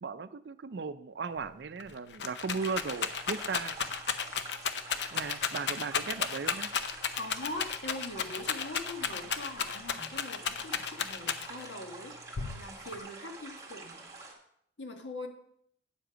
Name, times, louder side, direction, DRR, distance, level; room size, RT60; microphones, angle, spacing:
voice 1, 0.0-3.8 5.1-6.7, right 5 dB, 70° right, 13 dB, 0.4 m, -37 dB
Rattle, 1.4-1.5 1.8-11.7 12.4-13.0, left 7 dB, 70° left, 0.6 m, -33 dB
sound 1, 2.5-14.3, right 3 dB, 20° right, 1.5 m, -47 dB
voice 2, 7.2-14.0 14.8-15.3, left 2 dB, 90° left, 4 dB, 1.5 m, -42 dB
8.9 x 7.6 x 5.1 m, 0.69 s
head